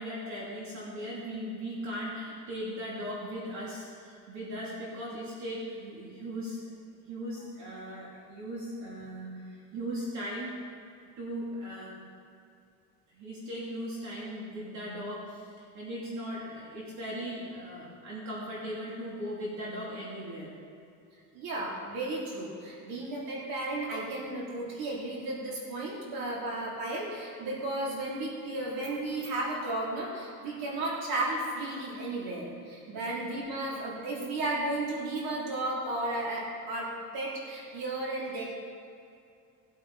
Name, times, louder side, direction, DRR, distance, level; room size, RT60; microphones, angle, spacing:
voice 1, 0.0-6.8 7.1-10.5 11.2-12.0 13.1-20.5 32.9-33.2, equal, 50° right, -6 dB, 3.1 m, -38 dB
voice 2, 21.3-38.4, right 2 dB, 70° right, -4 dB, 3.5 m, -34 dB
19.0 x 8.8 x 4.2 m, 2.4 s
cardioid pair, 165°, 37 cm